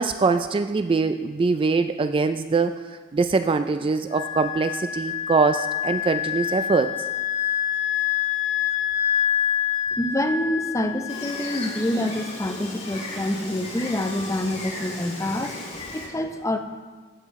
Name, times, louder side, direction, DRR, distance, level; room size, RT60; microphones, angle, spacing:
voice 1, 0.0-2.8 3.1-7.0, right 4 dB, 25° right, 10 dB, 0.3 m, -23 dB
Wind instrument woodwind instrument, 4.1-12.4, left 10 dB, 70° left, 2.1 m, -27 dB
voice 2, 10.0-16.6, left 1 dB, 15° left, 6 dB, 0.6 m, -27 dB
Gull seagull, 11.1-16.1, left 2 dB, 35° left, 2.9 m, -36 dB
14.5 x 8.9 x 3.6 m, 1.5 s
head